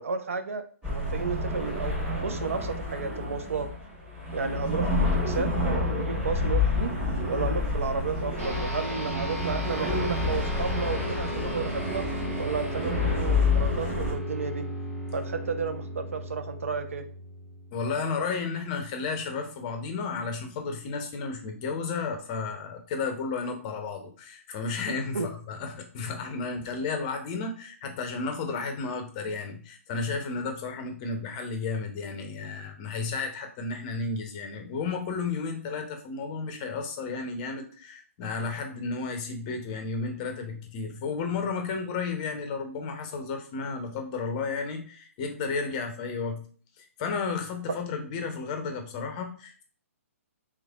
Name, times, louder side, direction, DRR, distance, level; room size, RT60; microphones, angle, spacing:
voice 1, 0.0-3.7 4.3-6.9 7.3-12.0 12.4-14.6 15.1-17.0 25.1-25.3, right 5 dB, 60° right, 8 dB, 0.5 m, -32 dB
sound 1, 0.8-14.1, left 3 dB, 10° right, 1.4 m, -29 dB
sound 2, 8.4-18.1, equal, 85° right, 1.3 m, -36 dB
voice 2, 17.7-46.4 46.8-49.6, left 4 dB, 30° left, 5 dB, 0.6 m, -33 dB
3.2 x 3.2 x 2.3 m, 0.42 s
figure-of-eight pair, 130°, 8 cm